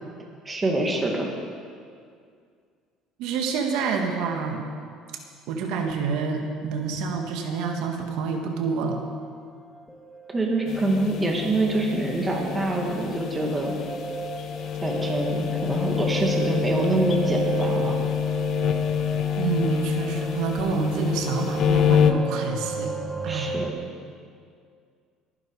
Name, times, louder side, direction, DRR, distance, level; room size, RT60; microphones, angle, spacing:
voice 1, 0.5-1.3 10.3-13.7 14.8-18.0 23.3-23.8, right 2 dB, 15° right, 0 dB, 2.2 m, -25 dB
voice 2, 3.2-4.6 5.5-9.0 19.4-22.9 23.2-23.6, right 5 dB, 70° right, 3 dB, 1.7 m, -27 dB
sound 1, 8.2-8.3 8.8-9.4 9.7-23.7, right 4 dB, ahead, 0.7 m, -34 dB
sound 2, 10.7-22.1, left 9 dB, 45° left, 1.0 m, -27 dB
22.0 x 10.5 x 4.9 m, 2.2 s
cardioid pair, 145°, 0 cm